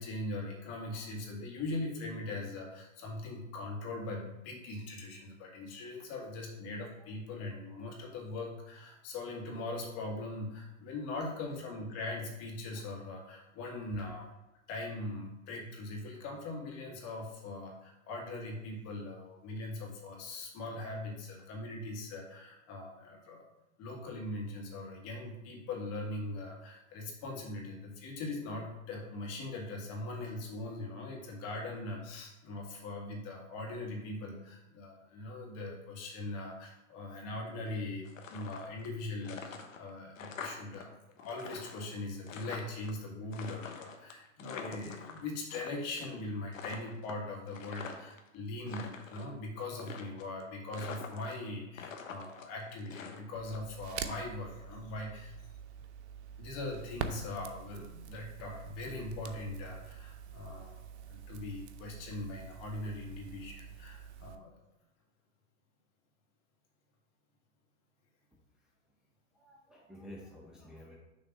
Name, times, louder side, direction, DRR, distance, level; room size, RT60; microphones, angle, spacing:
voice 1, 0.0-14.3 14.7-23.5 23.8-40.9 41.2-55.5 56.4-64.6, left 2 dB, 40° left, 0 dB, 2.0 m, -41 dB
sound 1, 38.0-38.9 39.2-40.8 41.1-42.9 43.3-45.7 46.0-46.3 46.5-48.2 48.6-49.3 49.8-50.4 50.7-51.5 51.7-53.6, left 6 dB, 80° left, 1.1 m, -45 dB
Crackle, 53.3-64.4, right 7 dB, 55° right, 0.7 m, -45 dB
voice 2, 69.3-71.0, left 1 dB, ahead, -3 dB, 0.7 m, -51 dB
6.6 x 3.3 x 6.0 m, 0.95 s
hypercardioid pair, 120°, 39 cm